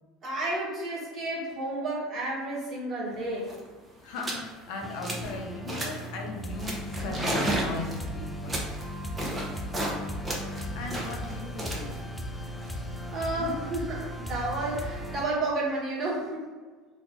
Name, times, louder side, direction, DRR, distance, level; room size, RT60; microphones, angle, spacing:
voice 1, 0.2-3.5 13.1-16.5, right 2 dB, 40° right, -4 dB, 1.2 m, -31 dB
sound 1, 3.1-3.2 3.4-3.7 4.1-4.5 4.8-5.3 5.7-6.1 6.6-10.0 10.2-13.3, right 1 dB, 20° right, 0.7 m, -33 dB
voice 2, 4.0-8.6 10.7-12.0 13.3-13.6, left 3 dB, 70° left, 2 dB, 0.5 m, -38 dB
sound 2, 4.8-15.2, equal, 10° left, 0.4 m, -37 dB
2.6 x 2.4 x 3.5 m, 1.4 s
hypercardioid pair, 80°, 0 cm